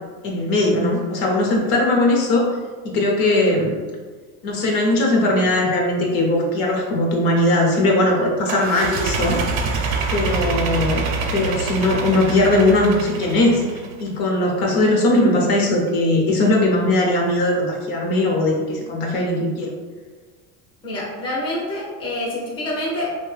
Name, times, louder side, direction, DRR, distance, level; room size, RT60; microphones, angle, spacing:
voice 1, 0.2-2.4 2.8-3.7 4.4-9.4 10.1-11.1 11.3-19.7, left 1 dB, 60° left, -1 dB, 0.7 m, -19 dB
sound 1, 8.5-14.0, right 4 dB, 60° right, 0.5 m, -25 dB
voice 2, 20.8-23.2, left 1 dB, 15° left, -5 dB, 0.5 m, -26 dB
2.6 x 2.1 x 3.1 m, 1.4 s
cardioid pair, 140°, 40 cm